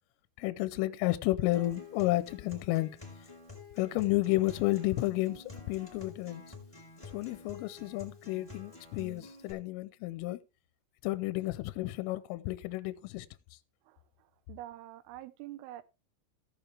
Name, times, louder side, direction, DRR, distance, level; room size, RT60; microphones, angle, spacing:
voice 1, 0.4-2.9 3.8-6.4 7.1-10.4 11.0-13.3, left 18 dB, 80° left, 3.1 m, -31 dB
Acoustic guitar, 1.5-9.5, left 4 dB, 5° left, 3.5 m, -49 dB
voice 2, 13.9-15.8, right 14 dB, 80° right, 3.3 m, -46 dB
16.0 x 6.8 x 3.3 m
omnidirectional pair, 6.0 m